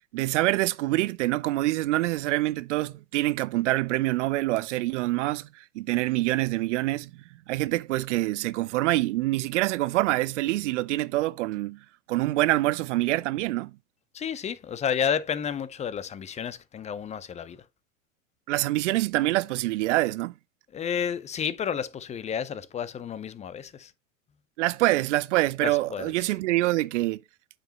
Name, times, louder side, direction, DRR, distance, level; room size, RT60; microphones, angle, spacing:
voice 1, 0.1-7.1 7.5-11.8 12.1-13.7 18.5-20.3 24.6-27.2, right 18 dB, 60° right, 0.6 m, -25 dB
voice 2, 14.1-17.6 20.7-23.9 25.6-26.3, left 8 dB, 15° left, 0.5 m, -31 dB
8.7 x 5.1 x 2.9 m
hypercardioid pair, 90°, 40 cm